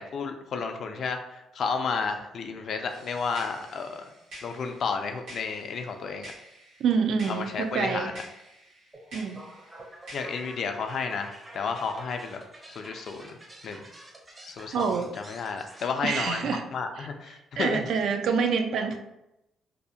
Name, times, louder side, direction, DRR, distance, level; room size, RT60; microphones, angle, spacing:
voice 1, 0.0-4.1 4.4-6.3 7.3-8.2 10.1-12.4 12.7-13.4 13.6-13.8 14.4-14.9 15.3-17.9, left 5 dB, 60° left, 5 dB, 0.3 m, -32 dB
sound 1, 2.9-10.6, right 1 dB, 85° right, 1.2 m, -49 dB
voice 2, 6.8-8.1 9.1-9.4 14.7-15.1 16.0-16.6 17.0-17.1 17.6-19.0, right 5 dB, 70° right, 6 dB, 0.3 m, -26 dB
sound 2, 8.9-15.9, right 1 dB, 30° right, 0.6 m, -48 dB
2.6 x 2.0 x 2.6 m, 0.89 s
cardioid pair, 90°, 0 cm